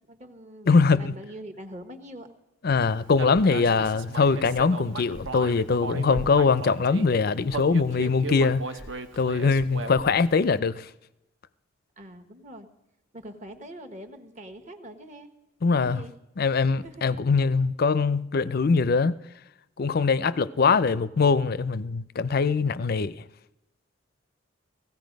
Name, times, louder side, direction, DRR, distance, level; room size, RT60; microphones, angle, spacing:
voice 1, 0.1-2.3 12.0-12.7 13.1-15.3 15.7-16.1 16.8-17.0, right 1 dB, 35° right, 1.2 m, -43 dB
voice 2, 0.7-1.2 2.6-8.7 9.2-10.9 15.6-16.0 16.4-19.2 19.8-23.2, left 4 dB, 45° left, 0.5 m, -22 dB
Human voice, 3.2-7.1 7.5-10.2, right 3 dB, 60° right, 0.9 m, -36 dB
16.5 x 16.5 x 5.2 m
head